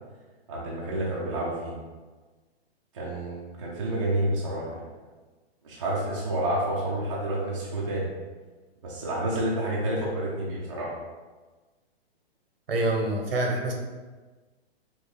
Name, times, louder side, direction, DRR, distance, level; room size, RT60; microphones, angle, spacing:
voice 1, 0.5-1.8 2.9-4.8 5.6-8.1 8.8-10.9, right 1 dB, 30° right, -6 dB, 0.5 m, -29 dB
voice 2, 12.7-13.7, right 1 dB, 65° right, 0 dB, 1.0 m, -26 dB
5.8 x 2.2 x 3.2 m, 1.3 s
hypercardioid pair, 180°, 32 cm